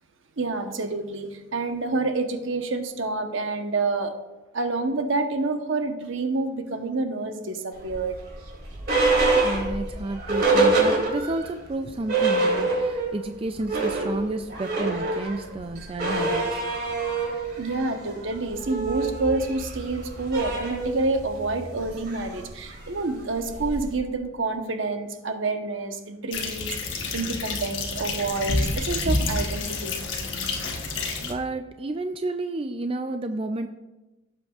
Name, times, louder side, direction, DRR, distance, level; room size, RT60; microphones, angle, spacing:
voice 1, 0.4-4.1 4.5-8.2 17.6-30.1, right 3 dB, 70° right, 6 dB, 1.0 m, -28 dB
sound 1, 7.8-11.5 11.8-11.9 12.1-13.2 13.5-23.9, right 3 dB, 50° right, 3.5 m, -26 dB
voice 2, 9.4-16.6 31.2-33.7, right 2 dB, 25° right, 7 dB, 0.4 m, -31 dB
sound 2, 26.3-31.3, left 3 dB, 65° left, 1.3 m, -28 dB
17.0 x 7.8 x 2.4 m, 1.0 s
head